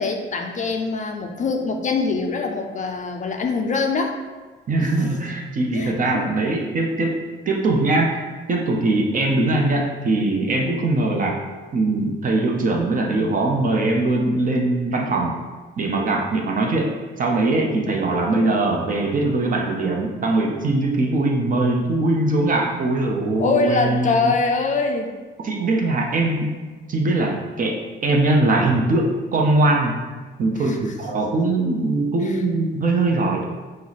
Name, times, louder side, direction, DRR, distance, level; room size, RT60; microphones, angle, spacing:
voice 1, 0.0-4.2 5.7-6.3 23.4-25.1 30.6-30.9 32.2-32.4, left 4 dB, 40° left, 3 dB, 0.4 m, -23 dB
voice 2, 4.7-7.2 7.5-8.2 8.5-11.4 11.7-15.4 15.8-16.9 17.2-24.3 25.4-26.5 26.9-29.9 30.4-33.4, right 2 dB, 45° right, 0 dB, 0.7 m, -21 dB
4.4 x 2.1 x 4.0 m, 1.3 s
cardioid pair, 90°, 20 cm